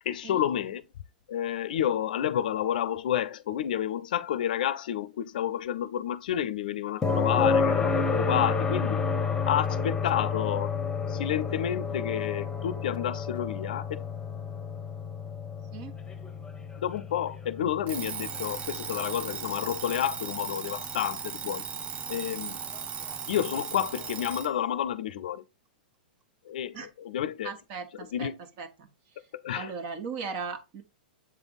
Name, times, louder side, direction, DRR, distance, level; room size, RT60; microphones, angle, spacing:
voice 1, 0.1-0.8 1.3-9.1 9.5-10.7 11.1-14.1 16.8-21.6 22.1-22.6 23.3-25.4 26.5-27.5 28.0-28.4 29.3-29.7, left 10 dB, 70° left, 0.5 m, -30 dB
sound 1, 7.0-20.9 23.1-23.2, left 5 dB, 10° left, 1.1 m, -30 dB
Alarm, 17.9-24.6, right 7 dB, 25° right, 0.7 m, -37 dB
voice 2, 27.4-28.3 28.6-28.9 29.5-30.8, right 5 dB, 45° right, 1.5 m, -37 dB
7.6 x 3.5 x 4.0 m
hypercardioid pair, 115°, 5 cm